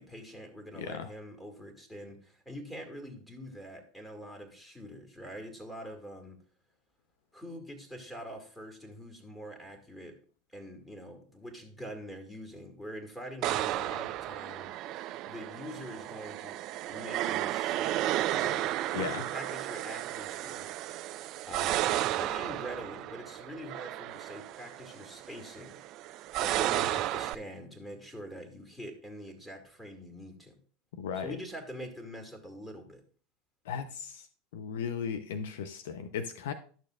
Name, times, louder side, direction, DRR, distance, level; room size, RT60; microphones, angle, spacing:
voice 1, 0.0-6.4 7.3-10.2 10.5-14.7 15.3-18.0 18.3-20.7 21.5-25.8 26.4-30.6 31.2-33.0, equal, 5° left, 4 dB, 2.0 m, -44 dB
voice 2, 0.7-1.1 18.9-19.2 31.0-31.4 33.7-34.3 34.5-36.5, left 7 dB, 65° left, 10 dB, 0.6 m, -36 dB
sound 1, 13.4-27.4, right 14 dB, 50° right, 0.3 m, -33 dB
12.0 x 6.6 x 2.3 m, 0.42 s
hypercardioid pair, 80°, 0 cm